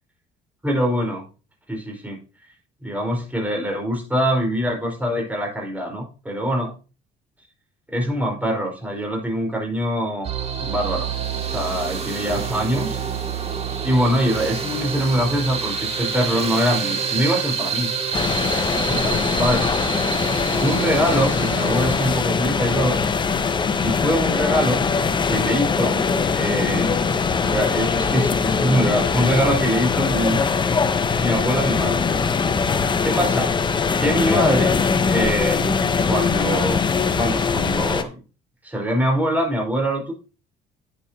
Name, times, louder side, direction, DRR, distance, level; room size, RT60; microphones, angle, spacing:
voice 1, 0.6-1.2 1.7-2.2 2.8-6.7 7.9-10.3 10.6-11.1 11.5-13.0 13.8-17.9 18.8-19.8 20.6-23.0 23.8-24.8 25.3-26.1 26.3-30.8 31.2-32.3 33.0-33.5 34.0-34.8 35.1-38.2 38.6-40.1, equal, 10° right, 0 dB, 4.5 m, -23 dB
sound 1, 10.2-22.2, right 6 dB, 35° right, 2.2 m, -27 dB
sound 2, 18.1-38.0, left 5 dB, 25° left, 0.9 m, -21 dB
11.0 x 8.6 x 2.8 m, 0.33 s
cardioid pair, 110°, 17 cm